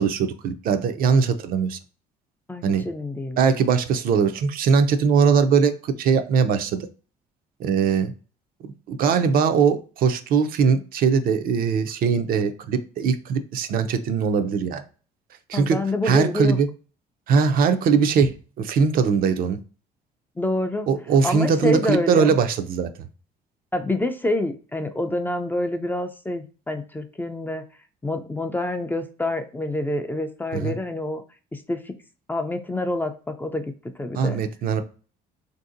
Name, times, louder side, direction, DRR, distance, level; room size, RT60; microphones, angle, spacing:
voice 1, 0.0-1.8 2.6-2.8 3.4-6.9 7.6-8.1 8.6-14.8 15.5-15.8 16.0-16.7 17.3-19.6 20.9-22.9 30.5-30.7 34.1-34.8, right 6 dB, 60° right, 9 dB, 0.4 m, -21 dB
voice 2, 2.5-3.4 15.5-16.6 20.4-20.9 21.2-22.3 23.7-27.6 28.0-31.2 31.5-31.9 32.3-34.4, left 1 dB, 10° left, 7 dB, 0.3 m, -27 dB
3.4 x 2.7 x 2.5 m, 0.37 s
cardioid pair, 110°, 17 cm